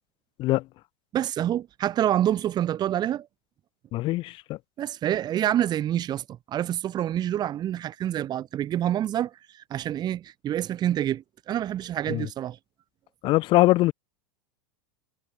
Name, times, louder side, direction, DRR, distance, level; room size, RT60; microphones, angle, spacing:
voice 1, 1.1-3.3 4.8-12.6, right 11 dB, 35° right, 2.8 m, -27 dB
voice 2, 3.9-4.6 12.1-12.3 13.2-13.9, left 18 dB, 45° left, 0.8 m, -22 dB
hypercardioid pair, 105°, 12 cm